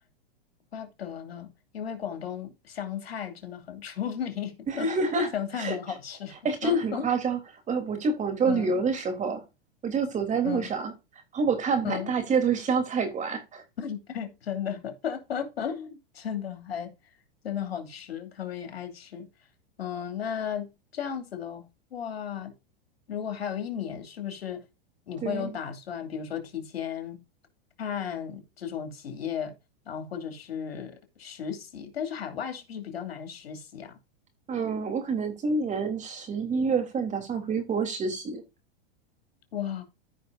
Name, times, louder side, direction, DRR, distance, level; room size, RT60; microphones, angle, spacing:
voice 1, 0.7-4.9 5.3-6.3 6.6-7.1 8.5-8.8 10.4-10.7 11.8-12.1 13.8-16.9 17.4-19.3 19.8-22.5 23.1-24.6 25.1-27.2 27.8-29.5 29.9-34.0 39.5-39.8, left 8 dB, 90° left, 2.8 m, -35 dB
voice 2, 4.7-5.3 5.6-5.8 6.4-7.4 7.7-9.4 9.8-10.9 11.3-13.6 25.2-25.5 34.5-38.4, right 4 dB, 25° right, 3.3 m, -27 dB
14.5 x 5.6 x 2.6 m
hypercardioid pair, 120°, 30 cm